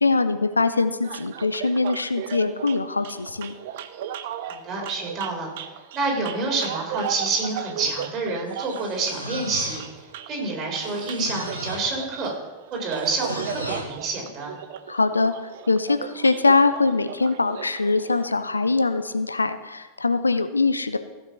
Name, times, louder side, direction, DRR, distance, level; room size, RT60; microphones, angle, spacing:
voice 1, 0.0-3.5 14.9-15.3 15.7-21.0, left 3 dB, 80° left, 11 dB, 0.7 m, -22 dB
sound 1, 1.0-18.3, right 9 dB, 55° right, 0.7 m, -37 dB
voice 2, 4.4-5.5 5.9-9.8 10.3-12.3 12.7-14.5, right 3 dB, 30° right, 0 dB, 4.1 m, -28 dB
sound 2, 8.5-10.1 10.7-12.0 12.9-14.0, equal, 90° right, 1.6 m, -36 dB
15.0 x 7.1 x 5.8 m, 1.2 s
figure-of-eight pair, 90°, 0 cm